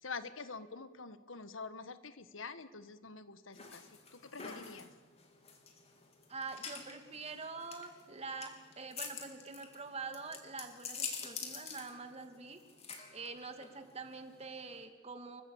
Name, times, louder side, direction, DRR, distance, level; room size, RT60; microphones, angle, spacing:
voice 1, 0.0-4.9, left 4 dB, 90° left, 12 dB, 1.5 m, -46 dB
sound 1, 3.5-14.8, left 5 dB, 35° left, 3.6 m, -47 dB
voice 2, 6.3-12.6 13.1-15.4, right 4 dB, 35° right, 7 dB, 2.5 m, -45 dB
29.5 x 24.0 x 7.3 m, 1.3 s
head